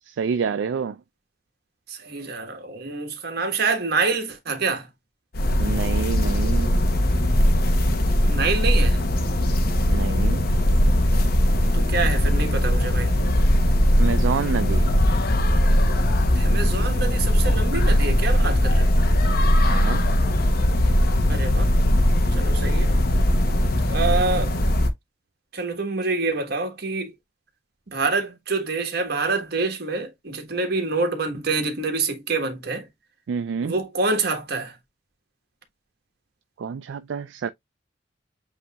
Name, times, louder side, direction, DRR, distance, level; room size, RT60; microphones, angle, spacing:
voice 1, 0.1-1.0 5.6-6.8 9.9-10.5 13.9-14.9 19.6-20.1 33.3-33.7 36.6-37.5, right 6 dB, 75° right, 0.3 m, -28 dB
voice 2, 1.9-4.9 8.2-9.0 11.7-13.2 16.3-18.9 21.3-21.7 22.3-22.9 23.9-24.5 25.5-27.1 27.9-32.9 33.6-34.7, right 4 dB, 60° right, 1.4 m, -26 dB
sound 1, 5.3-24.9, equal, 55° left, 0.9 m, -20 dB
8.1 x 2.8 x 2.3 m
head